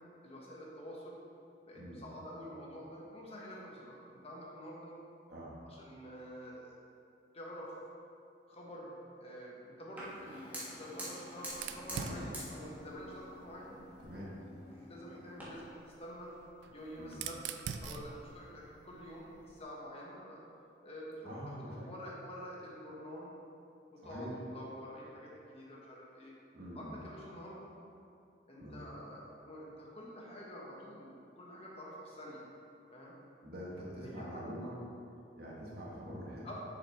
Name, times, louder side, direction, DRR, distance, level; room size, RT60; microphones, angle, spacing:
voice 1, 0.2-1.2 1.7-4.0 4.2-4.9 5.6-6.7 7.3-7.7 8.5-13.8 14.4-16.3 16.7-17.4 17.8-20.4 20.8-23.3 23.9-26.3 26.7-27.7 28.5-32.5 32.9-33.2 34.0-34.4 36.4-36.5, equal, 35° left, -4 dB, 1.2 m, -48 dB
Fire, 10.0-15.4, equal, 10° right, 1.4 m, -47 dB
Fire 2, 11.5-14.2 15.4-19.6, right 6 dB, 80° right, 0.4 m, -46 dB
voice 2, 14.0-14.3 17.0-17.3 21.2-21.9 24.0-24.4 26.5-27.0 28.6-28.8 33.4-34.8 35.4-36.5, equal, 60° right, -5 dB, 1.5 m, -45 dB
6.6 x 5.6 x 3.5 m, 2.5 s
head